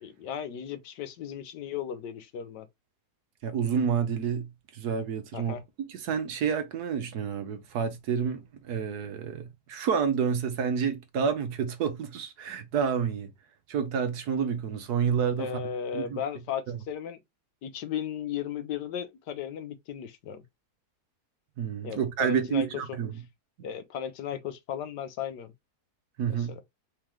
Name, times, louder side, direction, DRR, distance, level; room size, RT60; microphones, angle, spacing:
voice 1, 0.0-2.7 5.3-5.6 15.4-17.2 17.6-20.4 21.8-22.7 23.6-25.5 26.5-26.6, left 8 dB, 90° left, 1.4 m, -35 dB
voice 2, 3.4-5.5 5.9-13.3 13.7-15.6 15.9-16.2 16.7-16.8 21.6-23.2 26.2-26.5, right 7 dB, 70° right, 1.4 m, -29 dB
4.4 x 3.7 x 3.1 m
omnidirectional pair, 1.8 m